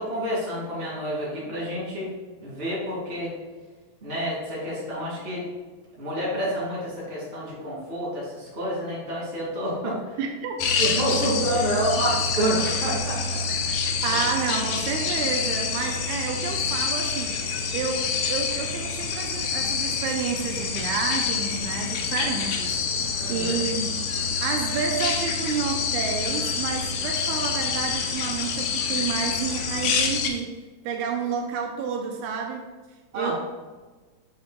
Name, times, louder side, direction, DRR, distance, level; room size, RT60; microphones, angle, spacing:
voice 1, 0.0-2.1 2.4-3.3 4.0-5.4 6.0-10.2 10.8-14.2 23.2-23.6 33.1-33.3, equal, 20° right, -5 dB, 2.3 m, -29 dB
voice 2, 10.2-10.6 14.0-17.4 17.7-22.8 23.3-24.0 24.4-30.5 30.8-32.6 33.1-33.3, right 5 dB, 85° right, 2 dB, 2.1 m, -30 dB
sound 1, 10.6-30.3, left 5 dB, 80° left, 2.1 m, -27 dB
8.7 x 7.1 x 2.3 m, 1.3 s
omnidirectional pair, 3.5 m